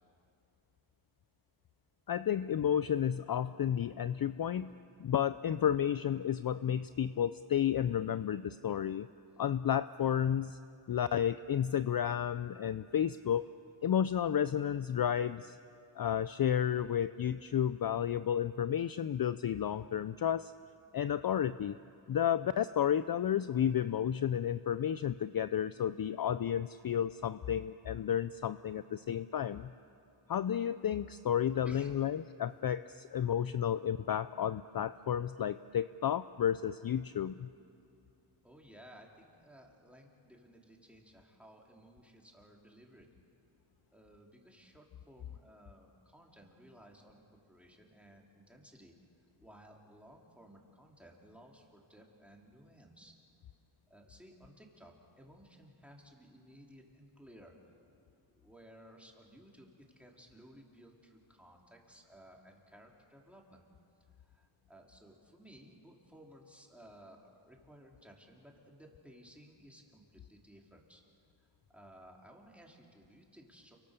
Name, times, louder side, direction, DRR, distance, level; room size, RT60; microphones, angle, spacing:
voice 1, 2.1-4.7 5.0-9.1 9.4-10.6 10.9-13.5 13.8-15.6 16.0-20.5 20.9-21.8 22.1-29.7 30.3-37.5, left 9 dB, 45° left, 14 dB, 0.5 m, -32 dB
voice 2, 38.4-43.1 43.9-49.0 49.4-53.1 53.9-57.5 58.3-63.6 64.2-71.0 71.7-73.8, equal, ahead, -1 dB, 3.9 m, -57 dB
29.5 x 23.5 x 6.8 m, 2.5 s
cardioid pair, 75°, 50 cm